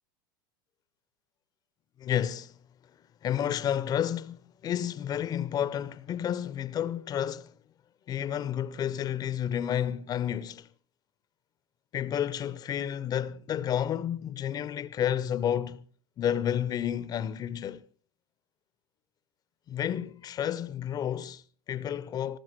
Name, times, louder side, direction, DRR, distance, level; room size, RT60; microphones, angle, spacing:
voice 1, 2.0-2.6 3.2-7.5 8.1-10.7 11.9-15.8 16.2-17.8 19.7-22.4, left 9 dB, 35° left, 0.8 m, -31 dB
19.5 x 15.0 x 4.4 m
figure-of-eight pair, 85°, 12 cm